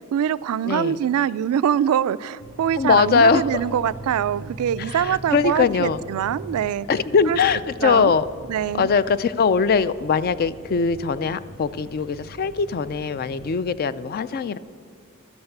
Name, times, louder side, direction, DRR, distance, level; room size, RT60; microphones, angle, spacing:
voice 1, 0.1-6.9 7.3-7.4 7.8-8.1 8.5-8.9, right 9 dB, 85° right, 17 dB, 0.3 m, -23 dB
voice 2, 0.6-1.0 2.8-3.5 4.8-6.0 6.9-8.3 8.7-14.6, left 5 dB, 45° left, 16 dB, 0.3 m, -21 dB
sound 1, 2.4-13.6, right 1 dB, 70° left, 2.7 m, -41 dB
12.0 x 8.0 x 6.6 m, 2.6 s
head